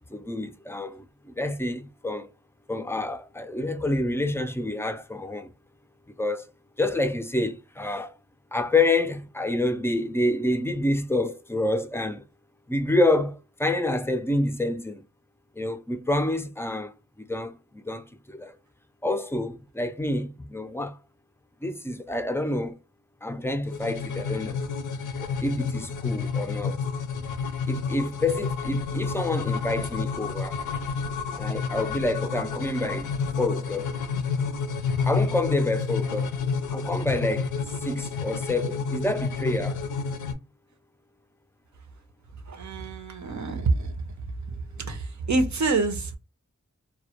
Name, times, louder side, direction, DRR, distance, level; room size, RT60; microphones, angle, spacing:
voice 1, 0.1-2.3 2.7-5.5 6.2-6.5 6.8-8.1 8.5-12.2 12.7-15.0 15.6-16.9 17.3-18.6 19.0-21.0 21.6-22.8 23.2-24.6 25.2-26.8 27.7-30.6 31.4-33.1 33.4-34.0 35.0-36.3 36.7-39.8, left 2 dB, 10° left, 0.3 m, -28 dB
sound 1, 23.7-40.3, left 5 dB, 85° left, 0.5 m, -30 dB
voice 2, 42.5-44.1 44.8-46.2, right 3 dB, 70° right, 0.6 m, -27 dB
2.1 x 2.0 x 2.8 m
wide cardioid pair, 50°, 30 cm